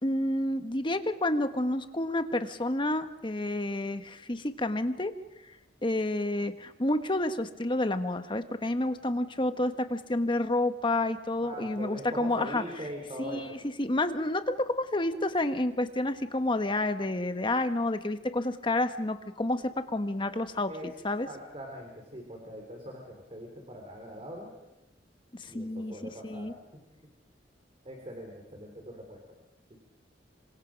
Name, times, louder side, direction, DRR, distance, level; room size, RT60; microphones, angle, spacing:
voice 1, 0.0-5.1 5.8-12.6 13.2-20.7 21.0-21.3 25.4-26.5, left 1 dB, 25° left, 8 dB, 1.2 m, -29 dB
voice 2, 11.4-13.6 20.7-20.9 21.3-24.5 25.4-26.5 27.8-29.2, equal, 35° right, 1 dB, 4.2 m, -42 dB
27.0 x 24.5 x 5.2 m, 0.98 s
head